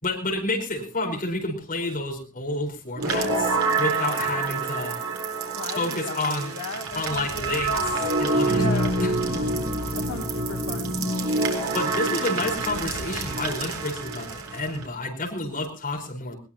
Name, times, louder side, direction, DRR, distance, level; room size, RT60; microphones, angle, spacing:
voice 1, 0.0-5.0 5.8-6.5 6.9-7.7 8.2-9.1 11.7-16.4, left 2 dB, 40° left, 1 dB, 4.6 m, -29 dB
sound 1, 3.0-14.8, right 2 dB, 65° right, 4.0 m, -27 dB
voice 2, 5.5-8.1 8.4-8.9 9.9-11.0, left 2 dB, 60° left, 1 dB, 1.7 m, -36 dB
21.0 x 19.5 x 2.9 m, 0.36 s
head